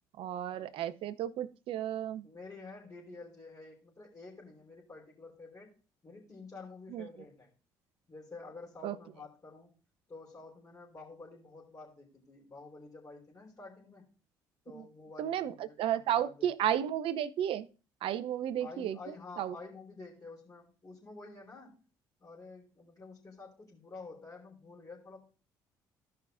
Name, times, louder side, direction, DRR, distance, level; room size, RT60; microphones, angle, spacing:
voice 1, 0.2-2.2 6.9-7.1 8.8-9.0 14.7-14.8 15.2-17.7 18.0-19.0 19.4-19.5, right 10 dB, 65° right, 14 dB, 0.7 m, -33 dB
voice 2, 2.2-5.7 6.0-7.5 8.1-9.7 10.1-14.1 14.6-16.7 18.6-21.8 22.2-25.2, left 3 dB, 30° left, -7 dB, 3.6 m, -50 dB
15.5 x 5.6 x 2.5 m, 0.34 s
hypercardioid pair, 55°, 10 cm